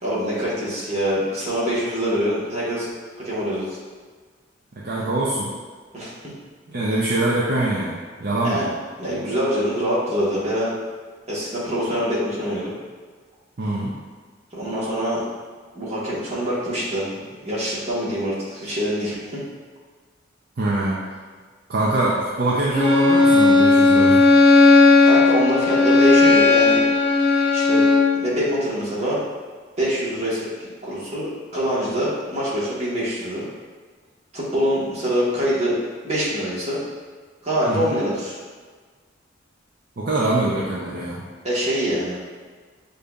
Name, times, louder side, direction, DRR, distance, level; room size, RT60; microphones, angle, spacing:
voice 1, 0.0-2.9 3.2-3.8 5.9-6.3 8.4-8.7 9.0-10.7 11.3-12.7 14.5-15.2 15.7-19.4 25.0-26.8 27.5-29.2 29.8-33.5 34.3-35.8 36.0-36.8 37.4-38.4 41.4-42.2, equal, 35° right, -7 dB, 1.2 m, -24 dB
voice 2, 4.8-5.5 6.7-8.7 13.6-13.9 20.6-21.0 21.7-24.2 37.7-37.9 40.0-41.3, right 2 dB, 50° right, -6 dB, 0.5 m, -23 dB
Bowed string instrument, 22.7-28.2, left 3 dB, 15° left, 1.0 m, -15 dB
6.6 x 2.6 x 2.3 m, 1.5 s
head